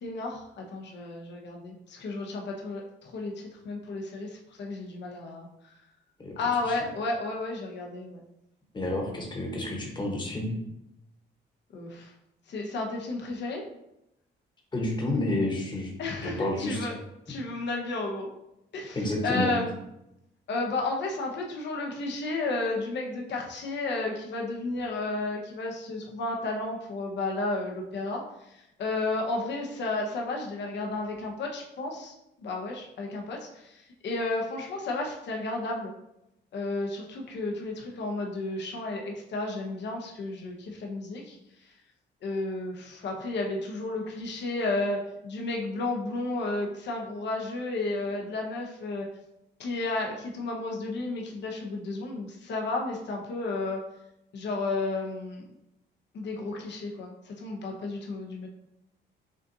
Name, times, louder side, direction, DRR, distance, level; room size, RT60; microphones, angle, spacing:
voice 1, 0.0-5.8 6.4-8.2 11.7-12.1 12.5-13.6 16.0-16.9 17.3-18.3 18.7-19.0 19.2-19.7 20.5-32.1 32.4-35.9 36.5-41.7 42.2-49.1 49.6-53.8 54.3-55.4 56.1-58.5, left 2 dB, 60° left, 0 dB, 0.9 m, -32 dB
voice 2, 8.7-10.6 14.7-15.9 16.2-16.9 18.9-19.5, left 1 dB, 25° left, -1 dB, 1.2 m, -30 dB
6.2 x 2.5 x 2.7 m, 0.84 s
cardioid pair, 90°, 20 cm